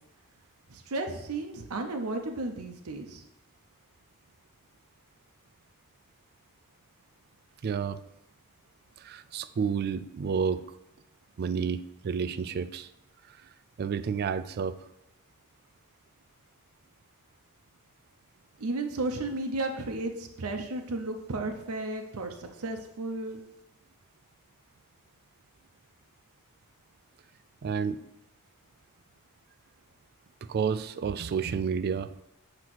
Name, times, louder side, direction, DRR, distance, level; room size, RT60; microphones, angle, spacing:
voice 1, 0.7-3.2 18.6-23.4, right 2 dB, 75° right, 4 dB, 0.6 m, -33 dB
voice 2, 7.6-8.0 9.0-10.7 11.4-12.9 13.8-14.8 27.6-28.0 30.4-32.1, right 6 dB, 45° right, 13 dB, 0.3 m, -30 dB
7.4 x 2.9 x 6.0 m, 0.84 s
head